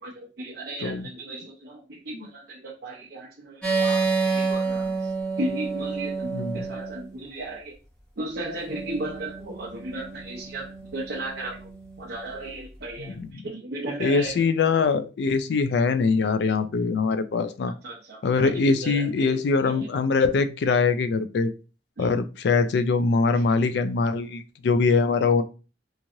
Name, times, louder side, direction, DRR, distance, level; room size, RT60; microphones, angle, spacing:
voice 1, 0.0-5.0 5.4-7.8 8.2-11.7 12.0-14.4 17.8-19.9 22.0-22.1, right 1 dB, 65° right, -4 dB, 0.7 m, -35 dB
sound 1, 3.6-7.1 8.7-12.2, right 4 dB, 5° left, 1.1 m, -29 dB
voice 2, 6.3-6.7 13.0-13.4 14.0-17.7 18.2-21.5 22.0-25.4, left 4 dB, 70° left, 12 dB, 0.3 m, -23 dB
3.0 x 2.4 x 2.7 m, 0.33 s
head